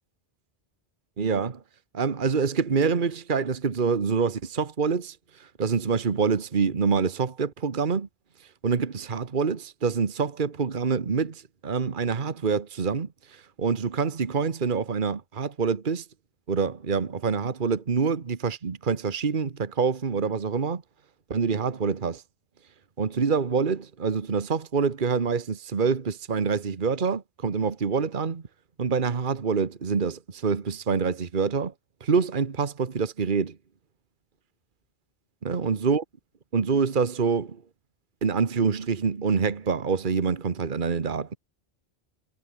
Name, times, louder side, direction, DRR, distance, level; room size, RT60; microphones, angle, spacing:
voice 1, 1.2-1.6 1.9-8.1 8.6-16.0 16.5-20.8 21.3-22.2 23.0-28.4 28.8-31.7 32.0-33.6 35.4-36.0 36.5-37.6 38.2-41.4, right 5 dB, 50° right, 1.4 m, -26 dB
omnidirectional pair, 1.1 m